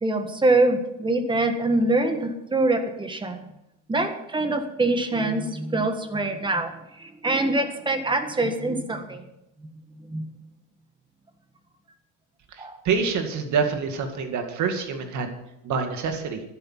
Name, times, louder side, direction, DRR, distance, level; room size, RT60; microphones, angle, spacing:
voice 1, 0.0-3.4 3.9-9.2 10.1-10.2 12.6-12.8, right 2 dB, 10° right, 7 dB, 1.6 m, -24 dB
voice 2, 12.5-15.3 15.6-16.4, right 5 dB, 50° right, 5 dB, 2.3 m, -26 dB
13.0 x 11.0 x 5.8 m, 0.87 s
cardioid pair, 145°, 38 cm